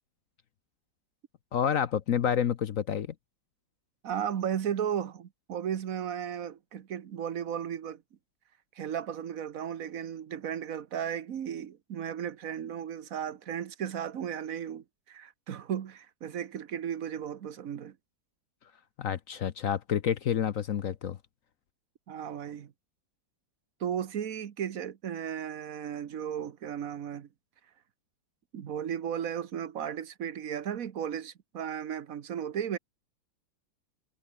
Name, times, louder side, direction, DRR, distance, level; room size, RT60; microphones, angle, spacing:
voice 1, 1.5-3.1 19.0-21.2, left 8 dB, 60° left, 1.0 m, -28 dB
voice 2, 4.0-8.0 8.7-18.0 22.1-22.7 23.8-27.3 28.5-32.8, right 9 dB, 50° right, 1.3 m, -35 dB
omnidirectional pair, 2.1 m